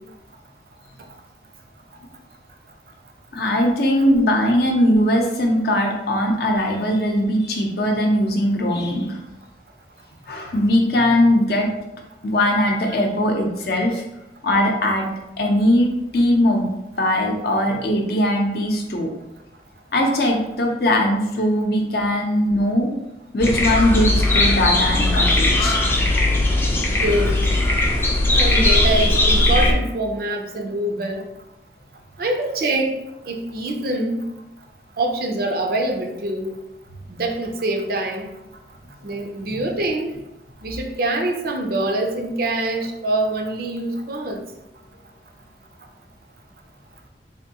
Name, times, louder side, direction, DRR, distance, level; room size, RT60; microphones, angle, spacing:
voice 1, 3.3-9.2 10.3-11.7 12.2-14.0 14.4-15.1 15.4-19.1 19.9-22.9 23.3-25.8 39.5-39.6, left 1 dB, 60° left, 1 dB, 0.6 m, -20 dB
sound 1, 23.4-29.7, left 2 dB, 15° left, 0.4 m, -18 dB
voice 2, 26.8-27.3 28.3-31.3 32.2-33.0 33.3-34.2 35.0-36.5 37.1-38.3 39.0-40.1 40.6-44.4, right 1 dB, 55° right, 3 dB, 0.5 m, -24 dB
3.5 x 2.6 x 2.8 m, 0.91 s
head